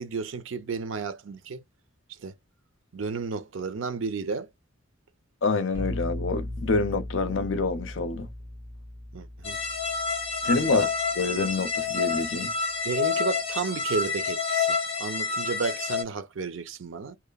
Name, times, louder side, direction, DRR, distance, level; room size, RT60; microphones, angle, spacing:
voice 1, 0.0-1.6 2.2-2.3 2.9-4.5 9.1-9.6 10.6-10.9 12.8-17.2, right 4 dB, 80° right, 0.6 m, -32 dB
voice 2, 5.4-8.3 10.4-10.9 11.2-12.5, left 3 dB, 75° left, 0.6 m, -27 dB
sound 1, 5.7-11.5, left 1 dB, 15° right, 1.2 m, -38 dB
sound 2, 9.4-16.0, left 5 dB, 30° left, 0.8 m, -28 dB
2.9 x 2.1 x 2.2 m
head